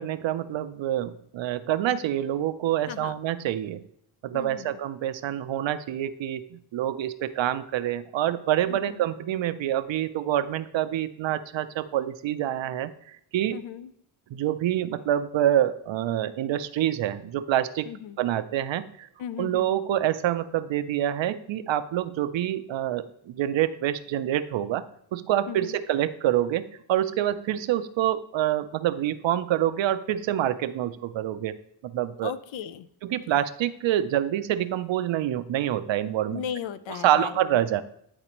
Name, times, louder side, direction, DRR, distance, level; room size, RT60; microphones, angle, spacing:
voice 1, 0.0-3.8 4.2-13.6 14.3-17.9 18.2-19.1 19.4-24.8 25.1-31.5 31.8-32.3 33.0-36.4 36.9-37.8, right 12 dB, 65° right, 13 dB, 0.6 m, -26 dB
voice 2, 4.3-4.8 8.7-9.0 13.5-13.9 17.9-18.2 19.2-19.7 25.5-25.8 32.2-32.9 36.3-37.4, left 9 dB, 65° left, 15 dB, 0.6 m, -36 dB
10.0 x 4.0 x 3.0 m, 0.70 s
cardioid pair, 100°, 49 cm